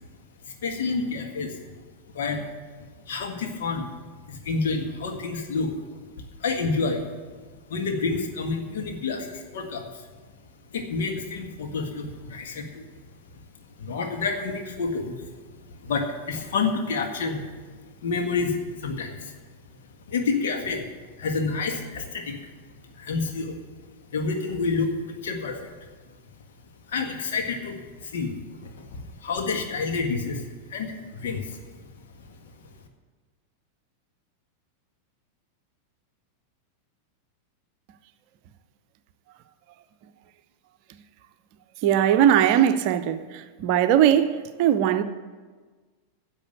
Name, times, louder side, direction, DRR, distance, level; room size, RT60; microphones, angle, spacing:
voice 1, 0.4-1.6 2.1-2.4 3.1-3.9 4.3-5.8 6.4-7.0 7.7-10.0 10.7-12.8 13.8-15.2 15.8-17.4 18.0-19.3 20.1-20.9 21.2-22.4 22.9-23.6 24.1-25.9 26.9-31.7, left 4 dB, 60° left, 1.7 m, -29 dB
voice 2, 41.8-45.0, right 10 dB, 45° right, 0.7 m, -20 dB
10.5 x 7.3 x 9.4 m
figure-of-eight pair, 90°, 0 cm